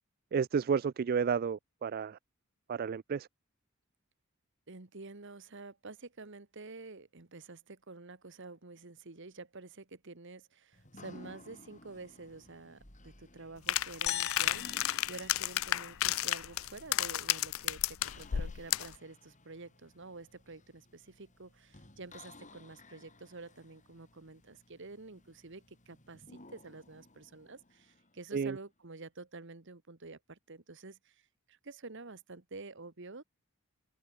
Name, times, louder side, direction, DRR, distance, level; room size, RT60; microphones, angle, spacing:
voice 1, 0.3-2.2 2.7-3.3 28.3-28.6, right 6 dB, 45° right, 0.3 m, -31 dB
voice 2, 4.7-33.2, right 3 dB, 60° right, 1.6 m, -49 dB
sound 1, 10.7-28.6, left 2 dB, 35° left, 5.7 m, -58 dB
sound 2, 13.7-19.0, left 13 dB, 80° left, 0.5 m, -32 dB
sound 3, 14.1-16.5, left 10 dB, 55° left, 1.7 m, -41 dB
head